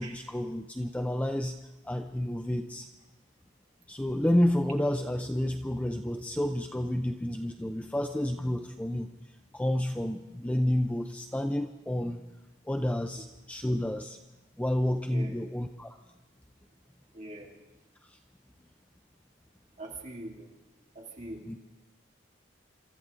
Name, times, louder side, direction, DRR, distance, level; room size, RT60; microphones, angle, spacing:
voice 1, 0.0-1.6 1.8-2.9 3.9-12.2 12.7-14.2 14.6-16.0 18.0-18.2 21.5-21.6, left 1 dB, 5° left, 6 dB, 0.4 m, -30 dB
voice 2, 17.1-17.5 19.8-20.5 20.9-21.4, right 2 dB, 35° right, -2 dB, 2.5 m, -42 dB
27.0 x 13.5 x 3.7 m, 1.0 s
head